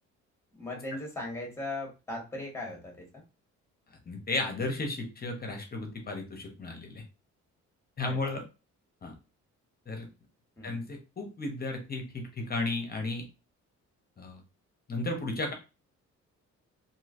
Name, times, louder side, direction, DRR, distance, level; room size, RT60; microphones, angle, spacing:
voice 1, 0.6-3.2 8.0-8.4 10.6-10.9, left 2 dB, 10° left, 0 dB, 1.5 m, -38 dB
voice 2, 4.1-7.0 8.0-8.4 9.0-9.1 9.9-10.1 10.6-13.2 14.2-14.4 14.9-15.5, left 2 dB, 30° left, 3 dB, 0.9 m, -34 dB
3.0 x 2.7 x 2.5 m, 0.29 s
cardioid pair, 90°, 30 cm